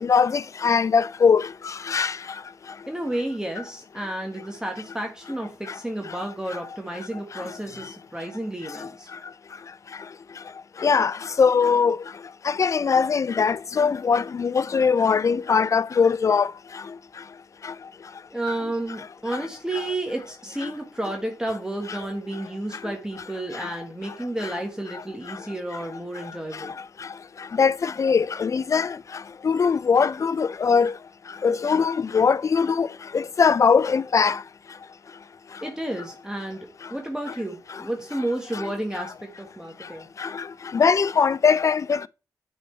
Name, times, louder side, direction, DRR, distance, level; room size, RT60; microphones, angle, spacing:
voice 1, 0.0-1.5 1.9-2.1 10.8-12.0 12.5-16.5 27.6-28.9 29.4-30.9 31.4-32.9 33.1-34.4 40.2-40.3 40.7-42.1, left 5 dB, 45° left, 0.4 m, -20 dB
voice 2, 2.9-9.1 18.3-26.7 35.6-40.1, right 1 dB, 10° right, 1.5 m, -31 dB
8.7 x 4.1 x 3.2 m
cardioid pair, 50°, 7 cm